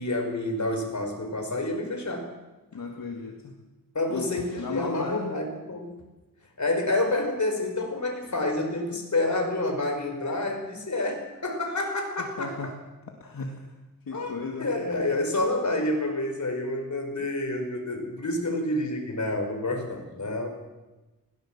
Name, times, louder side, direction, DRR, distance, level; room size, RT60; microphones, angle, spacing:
voice 1, 0.0-2.3 3.9-5.9 6.6-12.7 14.1-20.5, left 2 dB, 55° left, 4 dB, 4.9 m, -28 dB
voice 2, 2.7-3.5 4.1-4.3 4.6-5.5 12.2-12.7 13.2-13.5 14.1-14.7 18.0-18.1, left 4 dB, 70° left, 1 dB, 2.2 m, -35 dB
21.0 x 18.0 x 7.4 m, 1.1 s
wide cardioid pair, 105°, 35 cm